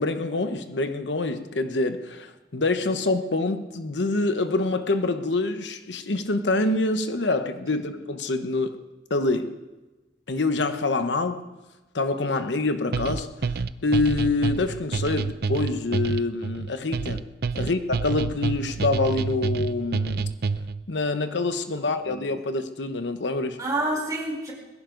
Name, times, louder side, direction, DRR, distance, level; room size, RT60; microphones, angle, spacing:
voice 1, 0.0-8.8 9.1-9.5 10.3-11.4 11.9-13.3 13.8-17.2 17.5-20.3 20.9-23.6, left 2 dB, 90° left, 1.1 m, -26 dB
sound 1, 12.9-20.8, right 4 dB, 60° right, 0.5 m, -28 dB
voice 2, 21.7-22.3 23.6-24.5, right 2 dB, 20° right, 4.5 m, -30 dB
21.0 x 15.5 x 3.9 m
head